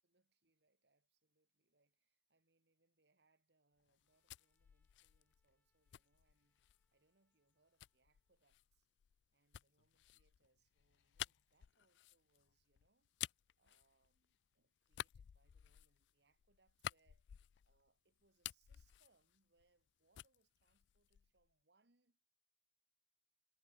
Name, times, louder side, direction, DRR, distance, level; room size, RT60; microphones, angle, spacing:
voice 1, 0.0-8.9 9.3-13.1 13.6-22.2, right 3 dB, 75° right, 2.0 m, -81 dB
sound 1, 3.9-6.9 7.8-14.5 14.9-17.9 18.2-19.9 20.1-21.5, left 12 dB, 85° left, 0.3 m, -52 dB
Trumpet, 4.0-8.5, left 2 dB, 10° left, 4.9 m, -93 dB
head